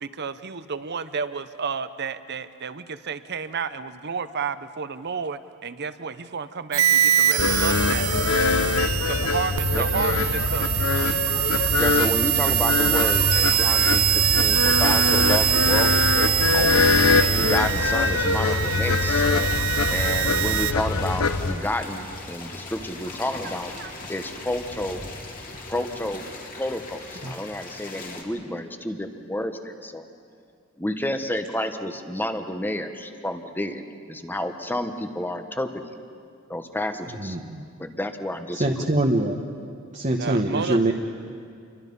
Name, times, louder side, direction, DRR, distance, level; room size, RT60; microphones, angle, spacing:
voice 1, 0.0-8.1 9.1-10.8 14.3-14.4 14.7-14.8 23.8-23.9 40.2-40.9, right 5 dB, 50° right, 12 dB, 0.9 m, -31 dB
sound 1, 6.7-20.7, right 12 dB, 90° right, 0.6 m, -23 dB
sound 2, 7.4-21.5, left 4 dB, 90° left, 1.1 m, -23 dB
voice 2, 11.8-16.9 17.4-19.2 19.9-23.7 24.1-25.0 25.7-26.3 26.5-30.1 30.8-35.9 36.5-37.4 37.8-38.9, left 1 dB, 10° left, 7 dB, 1.2 m, -30 dB
sound 3, 14.9-28.2, left 2 dB, 40° left, 3.0 m, -39 dB
voice 3, 37.2-37.6 38.5-39.4 39.9-40.9, right 2 dB, 35° right, 1 dB, 1.2 m, -24 dB
29.0 x 23.0 x 5.5 m, 2.3 s
head